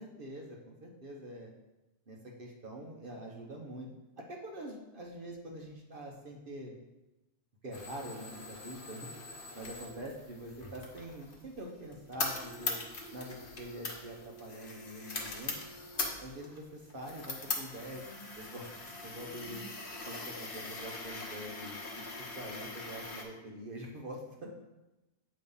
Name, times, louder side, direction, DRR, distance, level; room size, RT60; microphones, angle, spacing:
voice 1, 0.0-1.5 2.1-3.9 4.2-6.8 7.6-9.1 9.5-12.8 13.1-15.6 16.2-18.0 18.4-18.8 19.0-19.6 20.0-21.8 22.4-24.5, right 1 dB, 45° right, 0 dB, 1.0 m, -45 dB
sound 1, 7.7-23.2, left 3 dB, 45° left, 1.1 m, -41 dB
8.2 x 3.2 x 5.3 m, 1.0 s
omnidirectional pair, 1.4 m